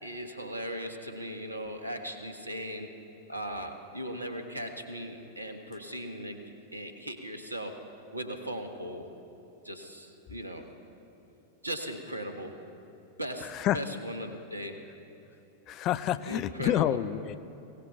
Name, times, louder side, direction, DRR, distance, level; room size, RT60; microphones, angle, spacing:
voice 1, 0.0-2.9 3.3-6.4 6.7-7.7 8.1-9.1 9.6-10.6 11.6-12.5 13.2-14.8 16.3-17.0, equal, 85° right, 6 dB, 1.3 m, -38 dB
voice 2, 15.7-17.4, left 12 dB, 35° left, 14 dB, 0.5 m, -28 dB
22.5 x 17.5 x 3.5 m, 2.8 s
figure-of-eight pair, 90°, 0 cm